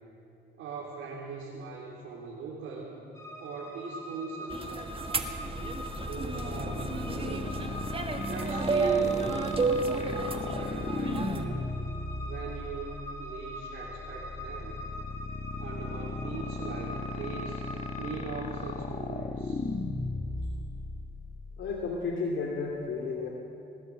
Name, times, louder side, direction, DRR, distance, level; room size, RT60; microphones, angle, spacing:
voice 1, 0.6-2.9 3.4-4.9 6.0-7.7 8.2-9.6 9.9-11.6 12.2-14.8 15.6-17.6 18.0-19.6, right 4 dB, 85° right, -5 dB, 3.6 m, -40 dB
sound 1, 3.1-18.2, equal, 15° left, 5.7 m, -43 dB
sound 2, 4.5-11.5, right 4 dB, 25° right, 1.7 m, -32 dB
sound 3, 4.9-22.1, left 3 dB, 35° left, 1.3 m, -37 dB
voice 2, 21.6-23.3, left 4 dB, 75° left, -1 dB, 2.5 m, -32 dB
21.0 x 19.0 x 7.7 m, 2.7 s
cardioid pair, 90°, 20 cm